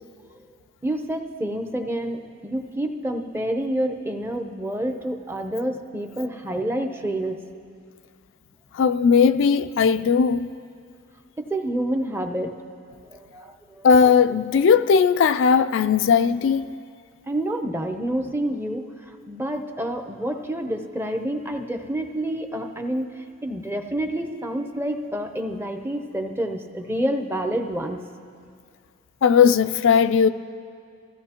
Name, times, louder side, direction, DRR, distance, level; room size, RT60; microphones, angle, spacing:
voice 1, 0.8-7.4 11.4-12.5 13.0-13.9 17.3-28.0, right 1 dB, 10° right, 0.7 m, -28 dB
voice 2, 8.7-10.5 13.8-16.7 29.2-30.3, left 6 dB, 60° left, 0.3 m, -18 dB
23.5 x 15.5 x 2.9 m
head